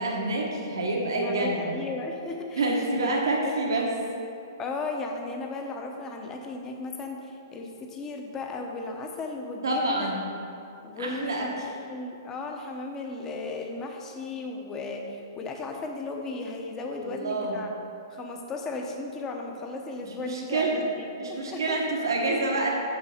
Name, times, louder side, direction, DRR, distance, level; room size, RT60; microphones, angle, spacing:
voice 1, 0.0-1.7 2.6-3.9 9.6-10.2 11.0-11.5 17.0-17.5 20.2-20.8 21.2-22.8, right 2 dB, 85° right, -1 dB, 1.3 m, -27 dB
voice 2, 1.1-3.5 4.6-10.1 10.8-17.7 18.1-21.8, left 3 dB, 20° left, 2 dB, 0.9 m, -35 dB
6.7 x 6.3 x 4.3 m, 2.7 s
hypercardioid pair, 130°, 2 cm